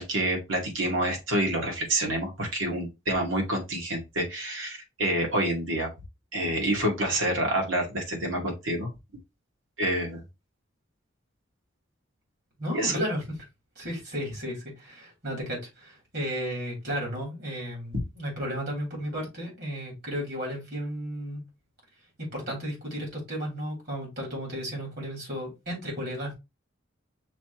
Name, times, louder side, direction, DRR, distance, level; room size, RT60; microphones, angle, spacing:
voice 1, 0.0-5.9 6.3-8.9 9.8-10.2 12.7-13.0, right 1 dB, 80° right, 1 dB, 1.9 m, -28 dB
voice 2, 12.6-13.4 13.7-21.4 22.2-26.3, equal, 55° right, -1 dB, 3.1 m, -34 dB
6.0 x 3.0 x 2.9 m, 0.23 s
head